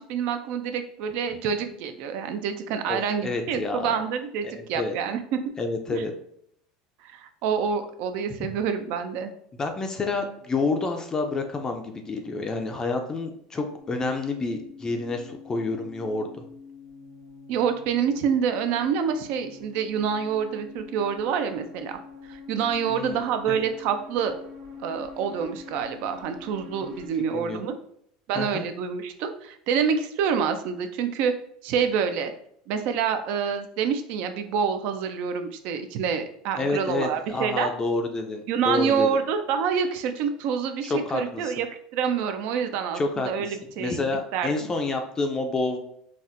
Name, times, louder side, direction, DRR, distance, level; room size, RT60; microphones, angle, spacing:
voice 1, 0.0-5.4 5.9-6.0 7.0-9.3 17.5-22.0 22.3-24.3 24.8-27.8 28.3-31.3 31.6-32.3 32.7-37.7 38.5-41.7 41.9-44.0 44.3-44.7, right 7 dB, 65° right, 8 dB, 0.4 m, -27 dB
voice 2, 2.9-3.9 4.6-5.0 5.6-6.1 8.4-8.5 9.6-16.5 22.9-23.2 23.5-23.6 27.3-27.6 28.3-28.7 36.6-39.2 40.8-41.5 42.9-45.8, left 3 dB, 20° left, 4 dB, 0.4 m, -29 dB
sound 1, 13.8-27.1, left 5 dB, 85° right, 0.8 m, -45 dB
4.0 x 2.1 x 2.5 m, 0.68 s
supercardioid pair, 115°, 3 cm